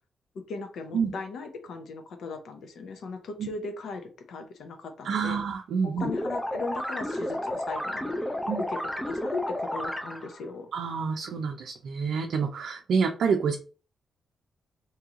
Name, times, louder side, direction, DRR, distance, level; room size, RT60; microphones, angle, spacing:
voice 1, 0.5-5.4 5.8-8.4 8.7-8.8 9.0-10.7, left 4 dB, 75° left, 6 dB, 0.8 m, -38 dB
voice 2, 5.0-6.1 8.5-8.6 10.7-13.5, right 6 dB, 70° right, 2 dB, 0.5 m, -28 dB
sound 1, 6.0-10.4, left 1 dB, 5° left, 0.4 m, -32 dB
3.1 x 2.8 x 3.7 m, 0.36 s
cardioid pair, 130°, 0 cm